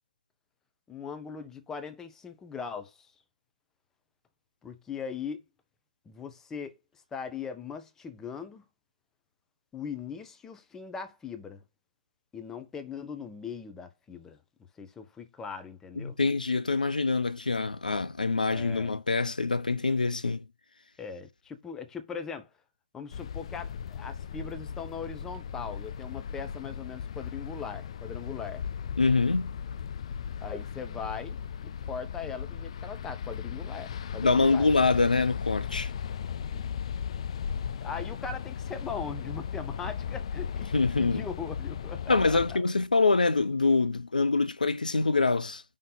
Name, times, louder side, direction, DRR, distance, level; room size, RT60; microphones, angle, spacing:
voice 1, 0.9-3.1 4.6-5.4 6.1-6.7 7.1-8.6 9.7-11.6 12.3-14.4 14.8-16.2 18.5-18.9 21.0-22.5 22.9-28.7 30.4-31.4 31.6-34.7 36.5-36.7 37.8-40.7 40.9-42.6, left 6 dB, 10° left, 0.8 m, -40 dB
voice 2, 16.0-20.5 29.0-29.5 34.2-35.9 40.7-41.3 42.1-45.6, left 3 dB, 80° left, 0.7 m, -25 dB
sound 1, 23.1-42.6, left 7 dB, 45° left, 0.4 m, -37 dB
5.4 x 3.7 x 5.4 m
figure-of-eight pair, 135°, 4 cm